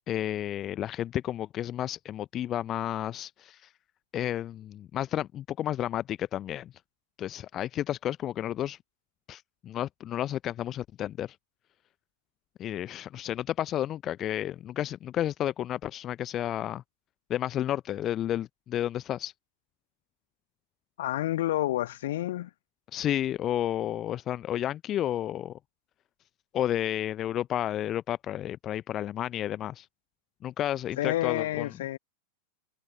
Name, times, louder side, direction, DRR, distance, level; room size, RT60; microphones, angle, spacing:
voice 1, 0.1-3.7 4.1-6.7 7.2-8.8 9.3-11.4 12.6-16.8 17.3-19.3 22.9-25.6 26.5-29.9 30.4-31.7, left 12 dB, 30° left, 0.7 m, -31 dB
voice 2, 21.0-22.5 31.0-32.0, left 14 dB, 55° left, 1.4 m, -29 dB
figure-of-eight pair, 90°, 0 cm